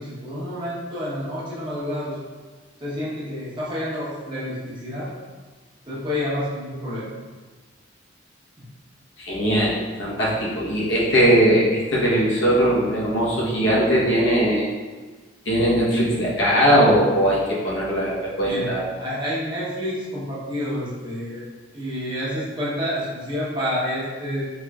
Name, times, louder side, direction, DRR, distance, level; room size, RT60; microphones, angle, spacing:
voice 1, 0.0-2.2 2.8-5.1 5.9-7.1 18.4-21.4 21.7-24.4, equal, 25° right, -8 dB, 0.9 m, -29 dB
voice 2, 9.2-14.7 15.5-18.8, equal, 75° left, -6 dB, 1.0 m, -20 dB
4.4 x 3.1 x 2.3 m, 1.4 s
head